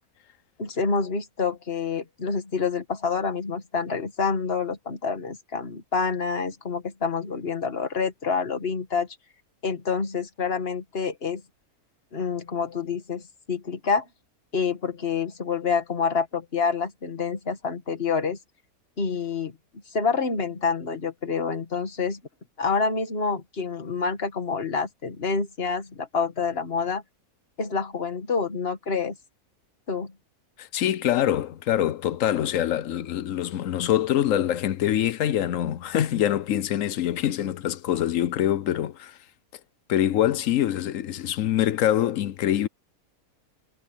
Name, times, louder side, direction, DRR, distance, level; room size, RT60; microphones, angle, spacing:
voice 1, 0.6-9.1 9.6-11.4 12.1-13.2 13.5-14.1 14.5-18.4 19.0-19.5 19.9-22.2 22.6-27.0 27.6-29.2 29.9-30.1, left 5 dB, 40° left, 2.0 m, -27 dB
voice 2, 30.6-39.2 39.9-42.7, left 11 dB, 65° left, 1.0 m, -24 dB
omnidirectional pair, 1.6 m